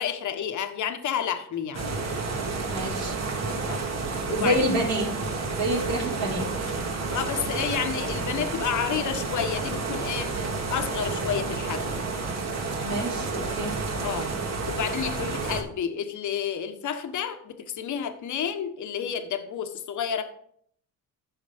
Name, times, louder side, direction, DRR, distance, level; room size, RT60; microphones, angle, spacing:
voice 1, 0.0-2.1 3.6-3.9 4.3-4.6 7.1-10.3 10.7-12.0 14.0-14.3 14.6-20.2, left 8 dB, 55° left, 7 dB, 1.2 m, -30 dB
sound 1, 1.7-15.6, right 3 dB, 50° right, 2.2 m, -30 dB
voice 2, 2.7-3.2 4.2-5.1 5.5-6.4 12.8-13.7, equal, 70° right, -3 dB, 4.6 m, -27 dB
15.0 x 5.6 x 3.5 m, 0.63 s
cardioid pair, 100°, 35 cm